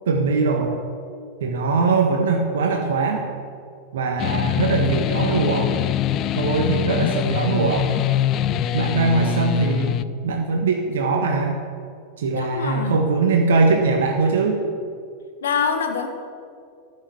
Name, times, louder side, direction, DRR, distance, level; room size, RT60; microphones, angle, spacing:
voice 1, 0.1-0.8 1.4-3.3 3.9-5.7 6.3-8.0 8.7-11.6 12.2-14.7, right 4 dB, 60° right, 2 dB, 1.4 m, -21 dB
sound 1, 4.2-10.0, left 11 dB, 35° left, 0.4 m, -23 dB
voice 2, 12.3-13.0 15.4-16.1, left 6 dB, 65° left, 6 dB, 1.5 m, -24 dB
13.0 x 6.9 x 8.5 m, 2.3 s
figure-of-eight pair, 90°, 0 cm